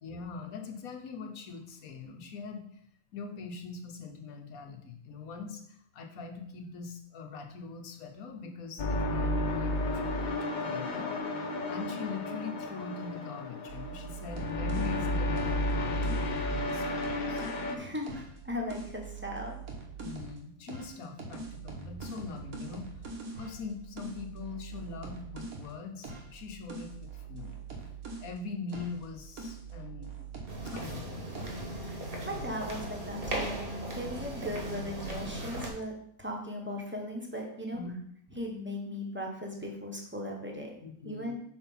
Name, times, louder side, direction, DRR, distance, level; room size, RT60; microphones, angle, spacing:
voice 1, 0.0-2.6 3.1-11.1 11.7-17.5 20.0-23.0 23.3-27.6 28.2-30.2 30.6-31.3 37.7-38.0 40.8-41.3, left 4 dB, 80° left, 4 dB, 1.3 m, -42 dB
sound 1, 8.8-17.8, left 1 dB, 50° left, 0.6 m, -32 dB
sound 2, 13.7-17.7 18.0-20.4 20.7-28.4 28.7-31.1 31.3-31.7, right 4 dB, 80° right, 1.6 m, -43 dB
voice 2, 17.7-19.5 31.8-33.6 33.9-37.8 38.3-40.7 41.0-41.3, left 1 dB, 10° right, 0 dB, 0.9 m, -38 dB
sound 3, 30.5-35.7, right 1 dB, 45° right, 1.2 m, -37 dB
4.8 x 4.4 x 5.5 m, 0.66 s
omnidirectional pair, 1.5 m